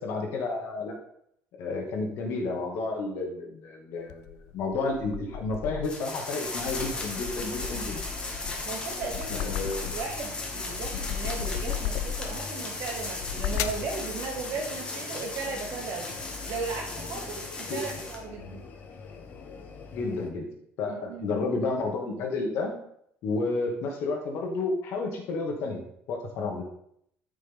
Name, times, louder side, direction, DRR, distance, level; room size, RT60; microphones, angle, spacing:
voice 1, 0.0-0.9 1.6-8.0 9.3-9.9 17.7-18.0 19.9-20.5 20.8-22.7 23.2-25.8 26.1-26.7, left 3 dB, 65° left, 1 dB, 2.3 m, -31 dB
sound 1, 4.1-6.0 6.5-10.2 10.6-12.5 13.1-13.9, left 9 dB, 85° left, 0.6 m, -35 dB
sound 2, 5.8-18.2, left 3 dB, 20° left, 1.7 m, -37 dB
sound 3, 6.7-20.3, left 4 dB, 40° left, 1.4 m, -43 dB
voice 2, 8.6-9.4 9.9-16.1 16.5-18.6 20.9-21.4, right 4 dB, 70° right, -3 dB, 3.6 m, -36 dB
13.5 x 6.3 x 3.8 m, 0.72 s
cardioid pair, 165°, 5 cm